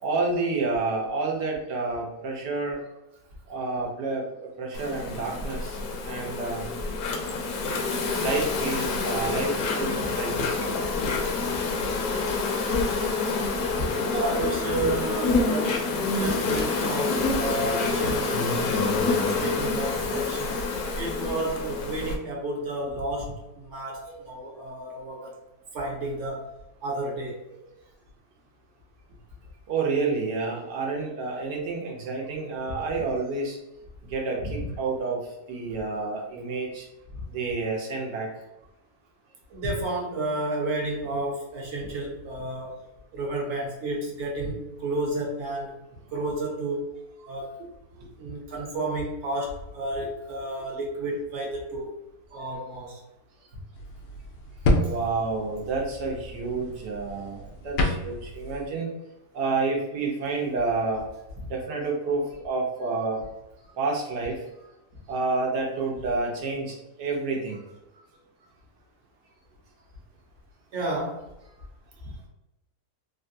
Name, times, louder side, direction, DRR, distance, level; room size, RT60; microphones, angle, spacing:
voice 1, 0.0-2.8 3.5-6.7 8.2-10.6 13.8-13.9 24.1-24.2 27.5-27.6 29.7-33.6 34.1-35.2 35.5-36.9 37.3-38.3 48.0-48.1 54.8-58.9 59.3-61.0 61.5-63.2 63.8-64.4 65.1-67.6, right 3 dB, 85° right, -1 dB, 1.4 m, -29 dB
Insect, 4.7-22.1, left 3 dB, 70° left, 0.9 m, -27 dB
voice 2, 13.8-15.8 16.2-20.6 21.0-25.4 25.7-26.5 26.8-27.4 34.4-34.7 39.5-42.8 43.1-45.7 46.1-46.9 47.3-47.6 48.2-51.9 52.3-53.0 70.7-71.2, right 1 dB, 55° right, -1 dB, 0.9 m, -31 dB
sound 1, 53.7-58.7, left 1 dB, 90° left, 1.2 m, -29 dB
3.4 x 2.2 x 2.5 m, 0.95 s
omnidirectional pair, 1.8 m